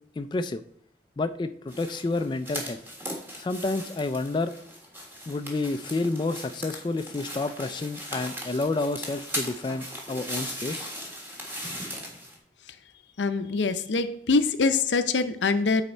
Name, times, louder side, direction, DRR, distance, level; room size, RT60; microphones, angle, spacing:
voice 1, 0.2-0.6 1.2-2.8 3.4-4.5 5.3-10.9, left 3 dB, 25° left, 9 dB, 0.3 m, -29 dB
sound 1, 1.7-12.4, equal, 15° right, 1.5 m, -38 dB
voice 2, 13.2-15.8, left 4 dB, 90° left, 10 dB, 0.6 m, -24 dB
9.6 x 4.2 x 4.4 m, 0.67 s
head